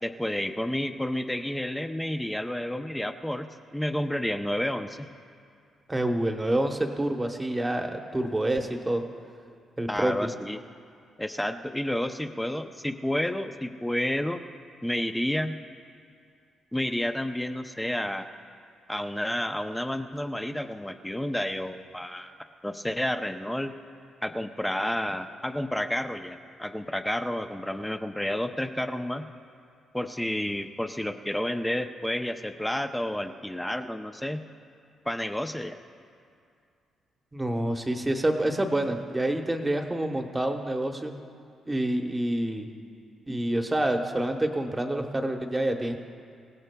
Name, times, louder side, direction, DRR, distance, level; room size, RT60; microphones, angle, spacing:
voice 1, 0.0-5.1 9.9-10.6 11.2-14.4 14.8-15.5 16.7-18.3 18.9-22.3 22.6-23.7 24.2-29.3 29.9-34.4 35.1-35.8, left 1 dB, 5° left, 6 dB, 0.4 m, -30 dB
voice 2, 5.9-9.0 9.8-10.1 37.3-41.2 41.7-42.7 43.3-46.0, right 1 dB, 10° right, 4 dB, 0.9 m, -27 dB
26.0 x 16.5 x 2.2 m, 2.3 s
cardioid pair, 175°, 0 cm